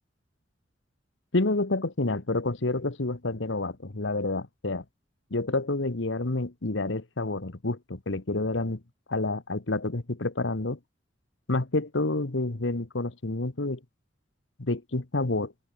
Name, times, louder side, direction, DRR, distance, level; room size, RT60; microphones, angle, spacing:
voice 1, 1.3-4.8 5.3-8.8 9.1-10.8 11.5-13.8 14.6-15.5, left 2 dB, 70° left, 1.4 m, -29 dB
open air
head